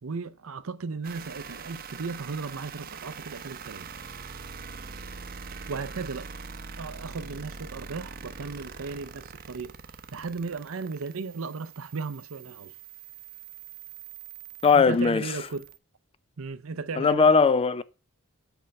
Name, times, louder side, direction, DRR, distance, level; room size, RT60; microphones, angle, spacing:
voice 1, 0.0-3.9 5.7-6.3 6.8-9.7 10.1-12.7 14.7-15.7 16.4-17.3, right 4 dB, 75° right, 0.6 m, -35 dB
sound 1, 1.0-15.8, right 5 dB, 45° right, 0.7 m, -43 dB
voice 2, 14.6-15.2 17.0-17.8, left 5 dB, 25° left, 0.3 m, -19 dB
8.1 x 4.6 x 6.4 m
head